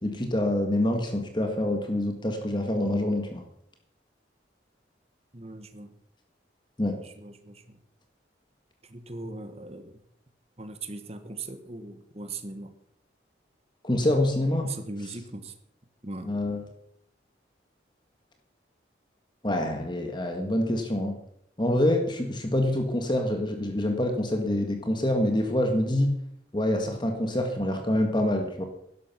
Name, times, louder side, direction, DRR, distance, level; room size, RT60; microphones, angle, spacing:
voice 1, 0.0-3.4 6.8-7.0 13.8-14.7 16.2-16.6 19.4-21.1 21.6-26.1 26.5-28.6, left 1 dB, 25° left, 4 dB, 1.6 m, -26 dB
voice 2, 5.3-5.9 7.0-7.8 8.8-10.0 10.6-12.7 14.5-15.5 16.0-16.3, right 3 dB, 35° right, 8 dB, 1.3 m, -39 dB
12.5 x 11.0 x 6.0 m, 0.73 s
head